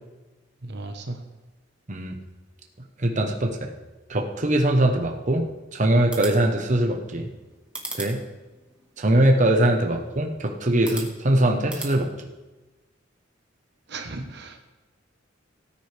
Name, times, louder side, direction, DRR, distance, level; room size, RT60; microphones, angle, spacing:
voice 1, 0.6-1.2 13.9-14.6, right 2 dB, 60° right, 5 dB, 1.1 m, -35 dB
voice 2, 3.0-3.7 4.1-5.4 5.7-7.3 7.9-8.2 9.0-12.1, right 1 dB, 40° right, 2 dB, 1.1 m, -21 dB
sound 1, 6.0-11.9, right 2 dB, 5° right, 1.7 m, -41 dB
18.0 x 9.7 x 3.5 m, 1.2 s
head